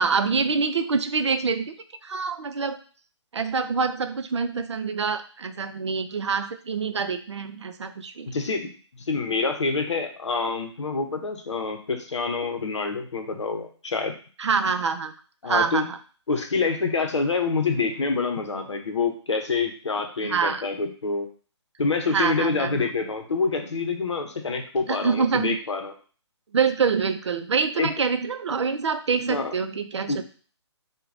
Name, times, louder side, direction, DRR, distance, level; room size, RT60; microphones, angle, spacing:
voice 1, 0.0-1.7 2.0-2.8 3.3-8.3 14.4-15.1 15.4-16.0 20.2-20.6 22.1-22.9 24.9-25.6 26.5-30.2, right 5 dB, 70° right, 9 dB, 0.5 m, -25 dB
voice 2, 8.3-8.7 9.1-14.1 15.4-15.8 16.3-21.3 21.8-25.9 27.8-27.9 29.3-29.5 30.1-30.2, left 4 dB, 75° left, 5 dB, 0.7 m, -26 dB
4.6 x 2.2 x 2.5 m, 0.41 s
figure-of-eight pair, 145°, 15 cm